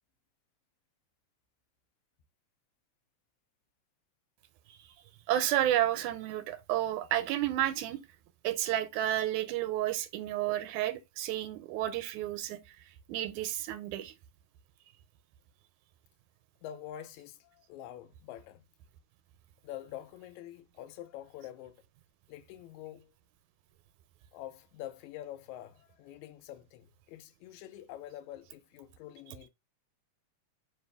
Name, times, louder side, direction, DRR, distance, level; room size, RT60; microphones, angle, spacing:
voice 1, 5.3-8.0 8.4-14.2 29.3-29.4, right 13 dB, 85° right, 1.9 m, -31 dB
voice 2, 16.6-18.6 19.6-21.8 22.3-23.1 24.3-29.5, left 12 dB, 80° left, 1.9 m, -46 dB
4.7 x 2.5 x 3.3 m
omnidirectional pair, 3.3 m